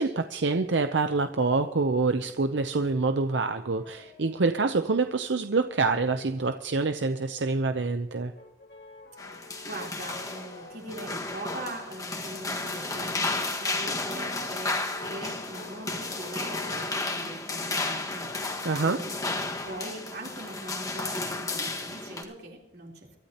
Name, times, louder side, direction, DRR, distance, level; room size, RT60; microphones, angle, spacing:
voice 1, 0.0-8.3 18.6-19.0, right 3 dB, 90° right, 8 dB, 0.7 m, -26 dB
Brass instrument, 2.9-4.9 5.6-7.7 8.3-17.0 17.6-19.0 19.3-20.1, left 2 dB, 65° left, 2.3 m, -49 dB
sound 1, 9.2-22.2, left 2 dB, 20° left, 1.7 m, -33 dB
voice 2, 9.6-18.4 18.8-19.1 19.6-23.2, right 1 dB, 60° right, 0 dB, 3.7 m, -41 dB
24.5 x 13.0 x 2.9 m, 0.91 s
head